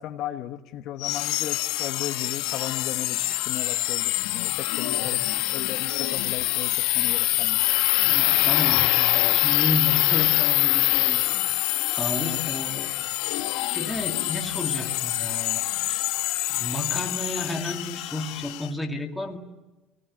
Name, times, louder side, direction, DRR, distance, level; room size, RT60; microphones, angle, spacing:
voice 1, 0.0-5.2 5.5-7.6 12.1-12.7 13.0-13.1 13.4-13.5, left 12 dB, 50° left, 6 dB, 1.2 m, -36 dB
sound 1, 1.0-18.7, left 19 dB, 75° left, 1.1 m, -25 dB
voice 2, 4.8-5.3 8.1-11.2 12.0-12.9 13.7-15.6 15.9-16.2 16.5-19.4, left 1 dB, 5° left, 1 dB, 2.2 m, -32 dB
30.0 x 19.5 x 9.9 m, 1.1 s
cardioid pair, 175°, 0 cm